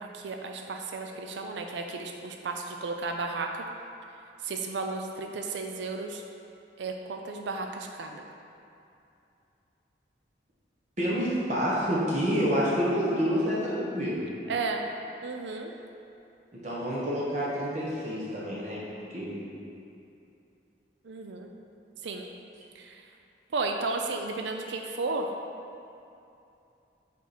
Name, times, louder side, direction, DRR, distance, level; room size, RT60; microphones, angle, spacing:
voice 1, 0.0-3.5 4.4-6.2 6.8-8.3 14.5-14.8 15.2-15.7 21.0-21.5 22.0-22.3 22.8-23.0 23.5-25.3, right 3 dB, 80° right, 3 dB, 0.4 m, -33 dB
voice 2, 11.0-14.2 16.6-18.8 19.1-19.4, equal, 40° right, -7 dB, 1.0 m, -28 dB
5.9 x 4.4 x 4.2 m, 2.7 s
head